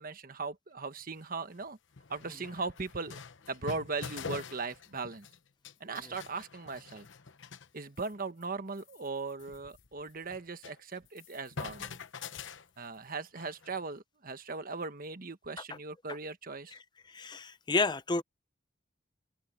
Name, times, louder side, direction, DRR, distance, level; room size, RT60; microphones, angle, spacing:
voice 1, 0.0-1.8 2.1-3.2 3.5-5.3 5.8-7.1 7.7-12.0 12.8-16.7, right 4 dB, 45° right, 1.3 m, -39 dB
sound 1, 1.0-1.1 1.6-1.7 1.9-5.4 5.6-7.7 8.0-8.1 8.4-8.5 8.8-10.8 11.1-13.8, left 5 dB, 75° left, 0.9 m, -45 dB
voice 2, 17.1-18.2, left 3 dB, 25° left, 0.6 m, -31 dB
open air
head